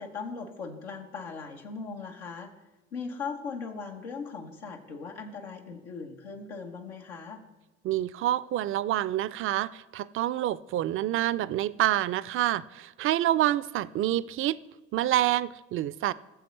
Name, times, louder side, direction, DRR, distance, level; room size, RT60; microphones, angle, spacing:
voice 1, 0.0-2.5 2.9-7.4, left 5 dB, 90° left, 1 dB, 1.0 m, -39 dB
voice 2, 7.8-14.6 14.9-16.1, right 13 dB, 40° right, 19 dB, 0.4 m, -27 dB
16.5 x 7.0 x 3.2 m, 1.1 s
hypercardioid pair, 60°, 32 cm